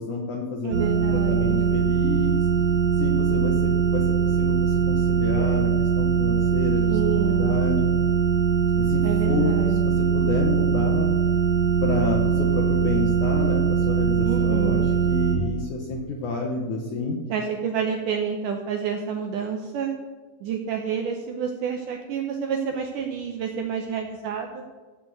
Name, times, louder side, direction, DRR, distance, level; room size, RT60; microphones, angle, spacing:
voice 1, 0.0-2.4 2.9-7.9 8.8-11.1 11.8-17.2, left 3 dB, 75° left, 0 dB, 1.8 m, -29 dB
voice 2, 0.6-1.7 6.9-7.6 9.0-9.8 14.3-14.9 17.3-19.9 20.4-24.6, right 7 dB, 85° right, 3 dB, 1.8 m, -29 dB
sound 1, 0.7-15.3, right 7 dB, 55° right, 2.7 m, -21 dB
15.0 x 5.1 x 7.7 m, 1.3 s
omnidirectional pair, 4.8 m